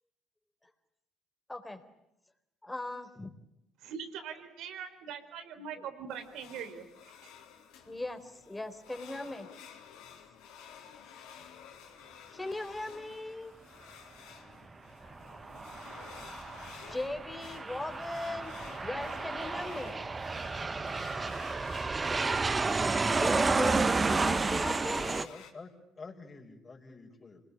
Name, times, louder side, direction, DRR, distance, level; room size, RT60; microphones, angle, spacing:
voice 1, 1.5-1.8 2.6-3.3 7.9-9.5 12.3-13.5 16.9-20.0 23.1-25.3, left 2 dB, 15° left, 9 dB, 4.0 m, -38 dB
voice 2, 3.8-7.3, right 7 dB, 70° right, 8 dB, 4.2 m, -42 dB
sound 1, 6.1-25.5, left 8 dB, 75° left, 3.9 m, -52 dB
Aircraft, 15.0-25.3, right 3 dB, 30° right, 1.3 m, -31 dB
voice 3, 25.2-27.4, left 4 dB, 30° left, 1 dB, 5.8 m, -48 dB
27.0 x 21.5 x 10.0 m, 0.85 s
hypercardioid pair, 65°, 0 cm